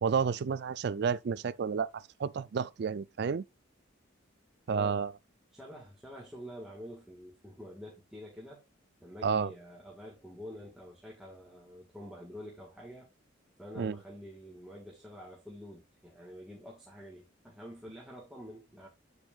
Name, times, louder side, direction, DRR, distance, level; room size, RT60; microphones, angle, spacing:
voice 1, 0.0-1.9 2.2-3.4 4.7-5.1 9.2-9.5 13.8-14.0, right 6 dB, 55° right, 0.4 m, -30 dB
voice 2, 4.7-5.1 5.5-8.7 9.0-13.1 13.6-18.9, equal, ahead, 1.6 m, -47 dB
8.2 x 8.0 x 2.4 m
head